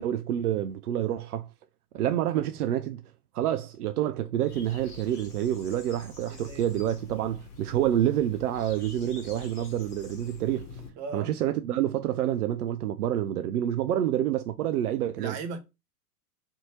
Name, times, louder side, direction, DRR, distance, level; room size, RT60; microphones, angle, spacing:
voice 1, 0.0-1.5 1.9-10.8 11.1-15.4, right 11 dB, 70° right, 0.5 m, -28 dB
sound 1, 4.5-10.9, left 3 dB, 75° left, 1.5 m, -46 dB
voice 2, 6.3-6.6 11.0-11.4 15.2-15.6, right 4 dB, 35° right, 0.8 m, -37 dB
3.4 x 2.7 x 2.9 m
figure-of-eight pair, 95°, 46 cm